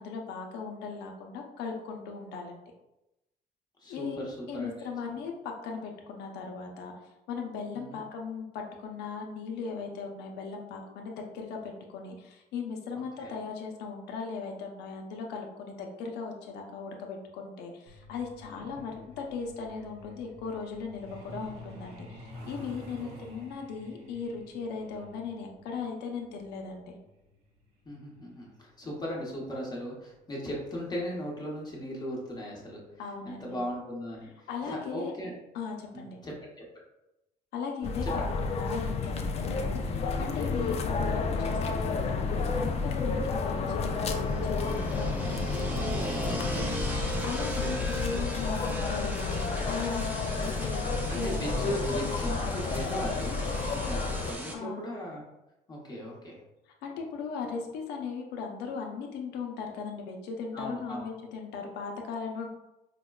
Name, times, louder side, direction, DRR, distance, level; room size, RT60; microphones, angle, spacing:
voice 1, 0.0-2.6 3.9-4.2 4.5-6.9 7.3-26.9 33.0-33.6 34.5-35.1 35.5-36.2 37.5-45.4 47.2-51.5 54.5-54.8 56.8-62.5, left 5 dB, 80° left, 2 dB, 0.6 m, -38 dB
voice 2, 3.8-5.2 7.7-8.0 13.2-13.3 18.6-18.8 23.0-23.4 27.8-32.8 33.2-35.3 35.9-36.7 38.0-38.2 46.3-46.8 47.6-47.9 51.1-53.4 53.6-55.2 55.7-56.4 60.5-61.0, equal, 25° left, -3 dB, 0.9 m, -38 dB
Truck, 17.9-30.2 31.4-31.6 31.9-32.1 32.5-32.8 33.1-33.2 33.7-33.8, left 1 dB, 85° right, 0.8 m, -49 dB
sound 1, 37.8-54.3, left 4 dB, 40° left, 0.4 m, -31 dB
sound 2, 43.8-54.5, right 1 dB, 10° right, 0.6 m, -37 dB
4.9 x 2.1 x 2.3 m, 0.93 s
cardioid pair, 110°, 17 cm